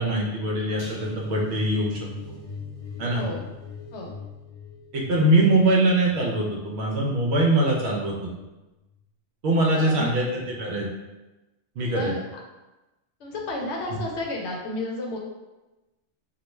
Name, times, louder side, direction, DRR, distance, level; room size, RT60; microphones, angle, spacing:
voice 1, 0.0-2.1 3.0-3.2 4.9-8.3 9.4-10.9 11.8-12.1, right 1 dB, 70° right, -2 dB, 0.8 m, -22 dB
sound 1, 0.8-7.9 8.2-8.5 8.8-9.0, left 4 dB, 40° left, 0.5 m, -41 dB
voice 2, 3.1-3.4 3.9-4.1 9.7-10.1 11.9-12.2 13.2-15.2, left 2 dB, 75° left, -1 dB, 0.8 m, -32 dB
2.4 x 2.2 x 3.0 m, 1.1 s
omnidirectional pair, 1.2 m